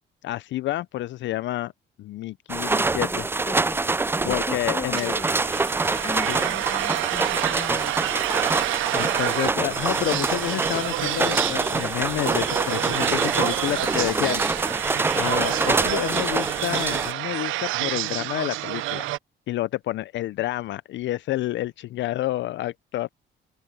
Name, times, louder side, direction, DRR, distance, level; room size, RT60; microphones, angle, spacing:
voice 1, 0.2-1.7 2.0-3.1 4.2-5.2 6.3-6.4 8.9-14.4 15.1-19.1 19.5-23.1, left 15 dB, 70° left, 0.4 m, -29 dB
sound 1, 2.5-17.1, right 3 dB, 10° right, 0.3 m, -26 dB
voice 2, 2.7-3.8 4.1-5.4 6.0-8.2 13.7-14.7, left 4 dB, 30° left, 1.3 m, -38 dB
sound 2, 4.9-19.2, right 17 dB, 85° right, 0.5 m, -29 dB
cardioid pair, 90°, 20 cm